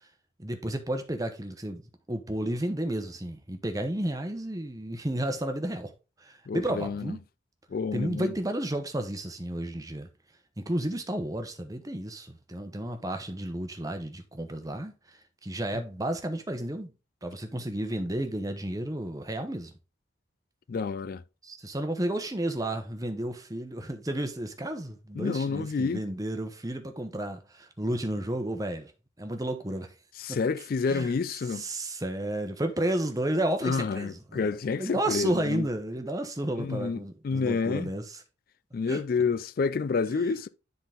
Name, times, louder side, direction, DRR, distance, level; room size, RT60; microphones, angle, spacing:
voice 1, 0.4-1.8 2.1-5.9 6.2-7.2 7.9-10.1 10.6-16.9 17.2-19.7 21.4-28.9 29.2-29.9 30.3-30.4 30.9-31.2 31.5-34.5 34.8-38.2 38.9-39.0, right 1 dB, 15° right, 0.9 m, -32 dB
voice 2, 6.5-7.1 7.7-8.3 20.7-21.2 25.2-26.0 30.2-31.6 33.6-35.7 36.6-37.9 38.7-40.5, left 5 dB, 45° left, 0.3 m, -29 dB
10.0 x 3.9 x 3.5 m
head